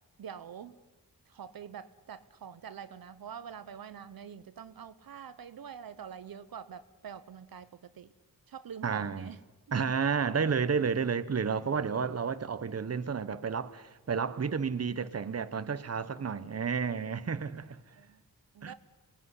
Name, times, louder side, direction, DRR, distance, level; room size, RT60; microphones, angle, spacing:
voice 1, 0.2-0.8 1.3-8.1 8.5-9.4 9.7-9.8 17.9-18.2 18.5-18.7, right 7 dB, 75° right, 0.9 m, -45 dB
voice 2, 8.8-9.3 9.7-17.8 18.6-18.7, right 6 dB, 45° right, 1.1 m, -31 dB
27.0 x 19.5 x 9.8 m
wide cardioid pair, 80°, 35 cm